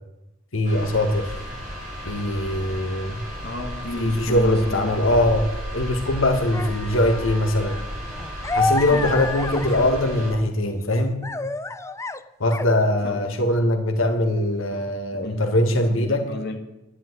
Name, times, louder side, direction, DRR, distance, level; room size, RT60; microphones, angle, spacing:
voice 1, 0.5-1.4 2.0-3.2 4.0-5.5 5.7-7.8 8.5-11.2 12.4-16.2, left 1 dB, 90° left, 5 dB, 1.7 m, -22 dB
sound 1, 0.6-10.3, equal, 40° right, 6.4 m, -34 dB
voice 2, 3.4-4.9 8.9-9.1 13.0-13.3 15.2-16.6, left 2 dB, 55° left, 3 dB, 2.0 m, -33 dB
sound 2, 6.5-10.5 10.8-12.2 12.5-12.8 13.1-13.2, left 3 dB, 15° left, 0.6 m, -30 dB
11.0 x 10.5 x 9.5 m, 0.95 s
head